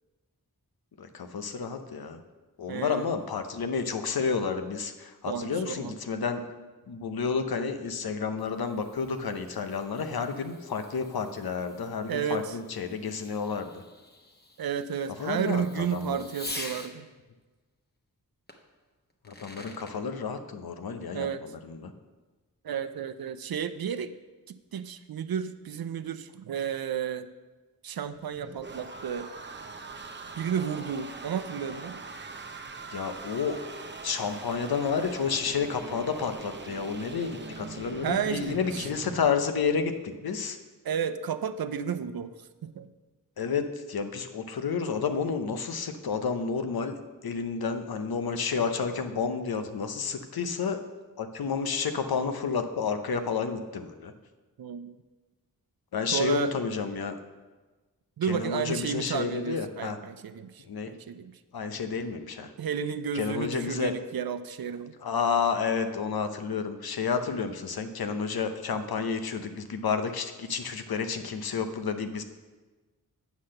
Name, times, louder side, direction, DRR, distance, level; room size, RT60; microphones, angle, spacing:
voice 1, 1.0-2.2 2.6-6.4 6.9-13.8 15.2-16.2 19.3-21.9 32.9-33.6 34.0-40.6 43.4-50.8 51.2-54.1 55.9-57.2 58.2-60.0 60.6-60.9 61.5-62.5 63.1-63.9 65.0-72.2, left 5 dB, 85° left, 8 dB, 0.8 m, -30 dB
voice 2, 2.7-3.1 5.3-5.9 12.1-12.6 14.6-17.1 21.1-21.4 22.6-24.1 24.5-27.3 27.8-29.3 30.4-32.0 38.0-38.9 40.8-42.9 54.6-55.0 56.1-56.5 58.2-61.3 62.6-64.9, right 7 dB, 75° right, 11 dB, 0.6 m, -32 dB
Fireworks, 8.2-16.9 18.5-18.6 19.1-20.0, left 2 dB, 25° left, 1.1 m, -46 dB
sound 1, 28.0-39.3, right 4 dB, 30° right, 0.7 m, -42 dB
8.4 x 5.8 x 6.4 m, 1.3 s
cardioid pair, 55°, 36 cm